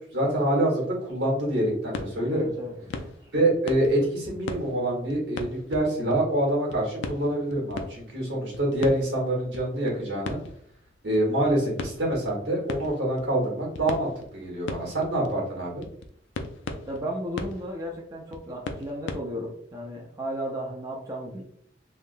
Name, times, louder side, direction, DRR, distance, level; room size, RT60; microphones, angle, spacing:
voice 1, 0.1-2.5 3.3-10.4 11.0-15.8, right 1 dB, 70° right, -3 dB, 1.3 m, -26 dB
sound 1, 1.7-6.4 6.7-19.2, left 3 dB, 75° left, 0.4 m, -39 dB
voice 2, 2.3-3.3 16.8-21.4, equal, 20° right, -2 dB, 0.4 m, -34 dB
3.4 x 2.2 x 2.5 m, 0.66 s
head